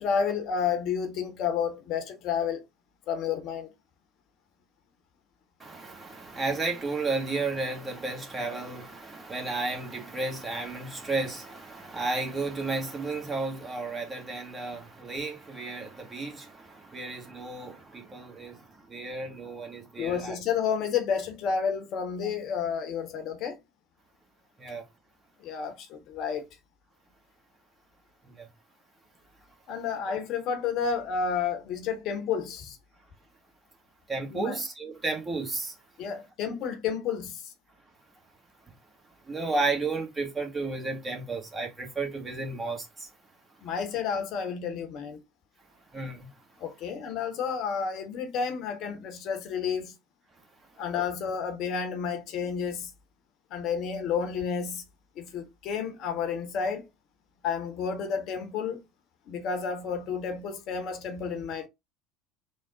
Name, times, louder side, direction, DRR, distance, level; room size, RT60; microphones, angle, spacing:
voice 1, 0.0-2.6 3.1-3.7 20.0-23.6 25.4-26.5 29.7-32.8 34.3-34.6 36.0-37.5 43.6-45.2 46.6-49.9 50.8-52.9 53.5-54.8 55.2-56.9 57.4-58.8 59.3-61.7, left 6 dB, 50° left, 0.8 m, -31 dB
voice 2, 5.6-18.6 18.9-20.4 24.6-24.8 28.2-28.5 34.1-35.7 39.3-43.1 45.9-46.3, right 3 dB, 20° right, 1.2 m, -33 dB
3.5 x 2.0 x 3.8 m
figure-of-eight pair, 70°, 0 cm